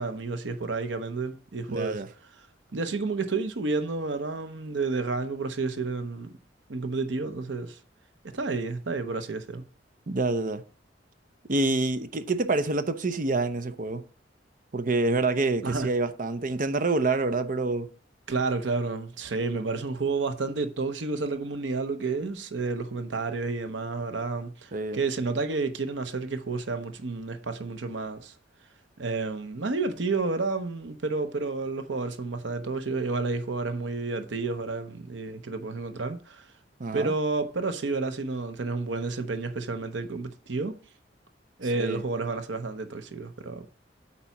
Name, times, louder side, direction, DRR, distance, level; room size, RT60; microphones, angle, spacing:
voice 1, 0.0-2.0 2.7-6.4 6.7-7.8 8.2-9.6 15.6-15.9 18.3-28.3 29.0-36.5 36.9-40.8 41.6-43.7, right 3 dB, 75° right, 0.8 m, -30 dB
voice 2, 1.7-2.1 10.1-10.6 11.5-14.0 14.7-17.9 24.7-25.0 36.8-37.1 41.8-42.0, right 3 dB, 45° right, 0.7 m, -27 dB
8.6 x 4.1 x 5.8 m
head